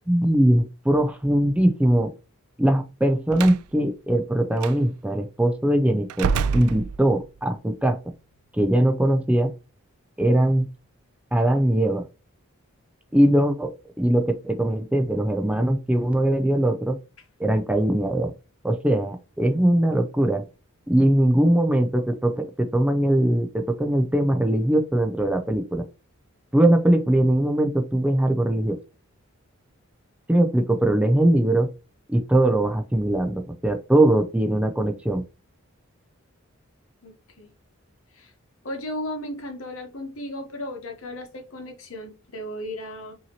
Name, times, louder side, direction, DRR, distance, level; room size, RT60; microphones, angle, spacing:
voice 1, 0.1-2.1 2.6-8.0 8.5-9.5 10.2-10.7 11.3-12.0 13.1-17.0 17.4-18.3 18.6-20.4 20.9-25.8 26.5-28.8 30.3-31.7 32.1-35.2, right 1 dB, 5° right, 0.4 m, -21 dB
Slam, 3.3-3.6 4.6-4.8 6.1-7.4, right 6 dB, 90° right, 0.3 m, -27 dB
voice 2, 37.0-37.5 38.1-38.3 38.6-43.1, left 1 dB, 70° left, 1.0 m, -35 dB
5.5 x 2.8 x 2.8 m
head